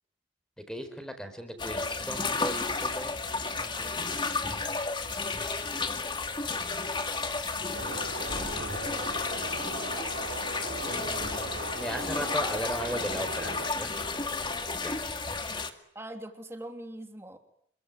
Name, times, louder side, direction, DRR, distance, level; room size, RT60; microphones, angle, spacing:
voice 1, 0.7-3.1 3.6-4.2 10.9-13.9 14.8-15.2, equal, 5° left, 8 dB, 4.8 m, -37 dB
sound 1, 1.6-15.7, left 3 dB, 25° left, 2.1 m, -32 dB
sound 2, 7.7-13.7, right 2 dB, 75° right, 4.4 m, -39 dB
voice 2, 8.2-9.3 9.6-10.2 15.9-17.4, right 1 dB, 15° right, 5 dB, 3.0 m, -44 dB
28.0 x 23.5 x 8.8 m, 0.68 s
head